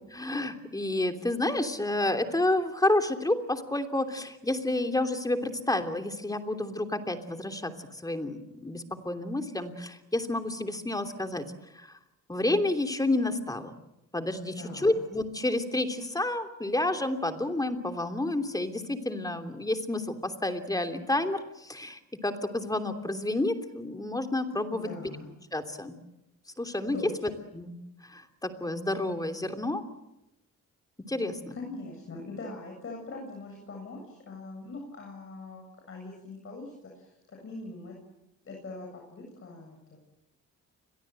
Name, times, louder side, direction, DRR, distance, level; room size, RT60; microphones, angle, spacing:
voice 1, 0.1-7.7 8.0-11.4 11.7-12.0 12.3-13.8 14.1-24.9 25.5-26.0 26.6-27.0 27.5-27.7 28.0-29.8 31.1-31.6, left 2 dB, 10° left, 6 dB, 3.1 m, -30 dB
voice 2, 14.5-15.0 24.8-25.3 26.9-27.3 31.5-38.0 38.4-40.0, left 3 dB, 45° left, 1 dB, 7.7 m, -42 dB
29.5 x 23.0 x 7.8 m, 0.90 s
cardioid pair, 90°, 30 cm